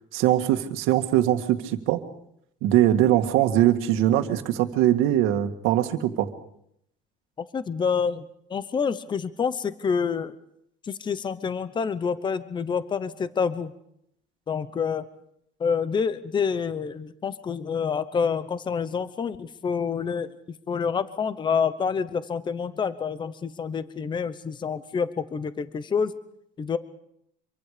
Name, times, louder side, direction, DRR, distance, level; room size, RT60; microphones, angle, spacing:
voice 1, 0.1-2.0 2.6-6.3, right 13 dB, 85° right, 8 dB, 1.9 m, -21 dB
voice 2, 7.4-10.3 10.8-13.7 14.5-15.1 15.6-20.3 20.7-26.1 26.6-26.8, left 6 dB, 20° left, 14 dB, 0.8 m, -27 dB
25.5 x 24.0 x 5.1 m, 0.75 s
cardioid pair, 150°, 20 cm